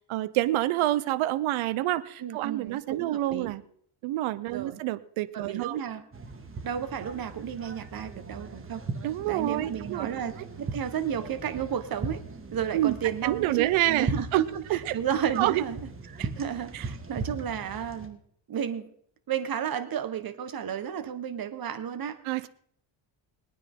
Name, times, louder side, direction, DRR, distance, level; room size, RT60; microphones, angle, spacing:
voice 1, 0.1-3.6 4.0-5.8 9.0-10.1 12.7-12.9 13.2-14.4 14.7-15.0 15.4-15.6 16.7-16.8 22.2-22.5, right 15 dB, 80° right, 15 dB, 0.8 m, -27 dB
voice 2, 2.2-3.5 4.5-4.8 5.3-6.0 6.6-8.8 9.3-12.2 12.5-18.2 18.5-18.9 19.3-22.2, right 9 dB, 45° right, 9 dB, 1.5 m, -32 dB
sound 1, 6.1-18.1, right 3 dB, 25° right, 2.1 m, -39 dB
21.0 x 9.6 x 3.8 m, 0.64 s
cardioid pair, 110°, 48 cm